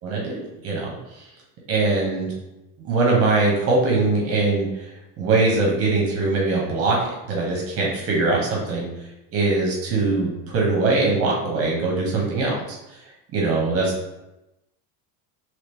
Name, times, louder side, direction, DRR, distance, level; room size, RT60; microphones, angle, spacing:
voice 1, 0.0-0.4 0.6-0.9 1.7-2.3 2.8-4.9 5.2-7.0 7.2-8.9 9.3-12.6 13.3-13.8, right 3 dB, 30° right, -2 dB, 0.9 m, -21 dB
3.0 x 2.8 x 3.4 m, 0.94 s
cardioid pair, 160°, 44 cm